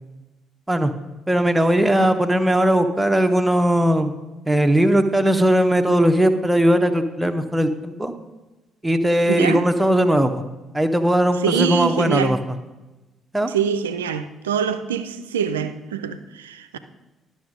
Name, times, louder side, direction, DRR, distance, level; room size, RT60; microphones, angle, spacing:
voice 1, 1.3-4.1 4.4-8.1 8.8-10.4 10.7-12.4 13.3-13.5, right 1 dB, 10° right, 7 dB, 0.9 m, -18 dB
voice 2, 9.3-9.6 11.4-12.4 13.5-16.8, right 8 dB, 75° right, 10 dB, 0.5 m, -25 dB
12.0 x 6.4 x 5.1 m, 1.1 s
figure-of-eight pair, 45°, 0 cm